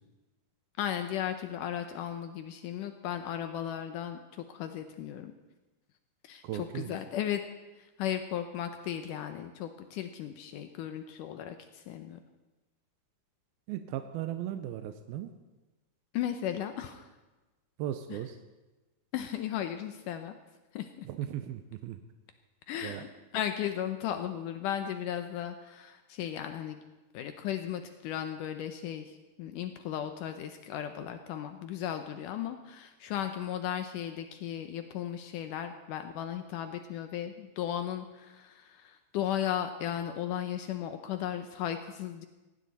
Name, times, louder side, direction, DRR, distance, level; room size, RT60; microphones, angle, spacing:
voice 1, 0.8-5.3 6.2-6.4 6.7-7.4 7.7-12.2 16.1-17.1 18.1-18.2 19.1-20.4 20.7-21.1 22.7-23.1 23.3-26.8 27.1-42.3, left 10 dB, 85° left, 7 dB, 1.8 m, -36 dB
voice 2, 6.4-7.0 13.7-15.3 17.8-18.4 21.1-22.0 22.8-23.1, right 11 dB, 75° right, 8 dB, 2.4 m, -37 dB
18.5 x 17.0 x 4.1 m, 1.1 s
omnidirectional pair, 4.7 m